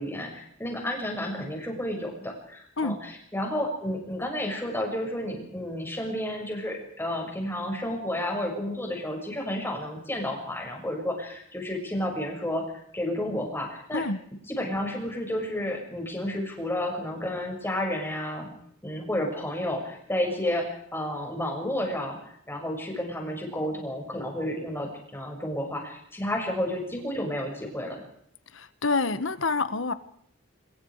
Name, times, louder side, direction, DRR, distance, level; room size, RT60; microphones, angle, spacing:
voice 1, 0.0-12.6 12.9-14.0 14.5-18.5 18.8-28.0, left 1 dB, 10° left, 1 dB, 6.7 m, -31 dB
voice 2, 28.5-29.9, left 3 dB, 75° left, 12 dB, 1.6 m, -27 dB
25.0 x 22.0 x 5.0 m, 0.67 s
head